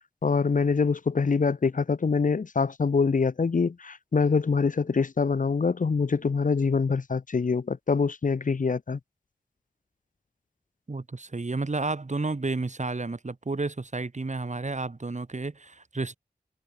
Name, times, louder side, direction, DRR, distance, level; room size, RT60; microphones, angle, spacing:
voice 1, 0.2-9.0, left 5 dB, 55° left, 0.8 m, -25 dB
voice 2, 10.9-16.2, right 3 dB, 50° right, 3.4 m, -31 dB
cardioid pair, 50°, 16 cm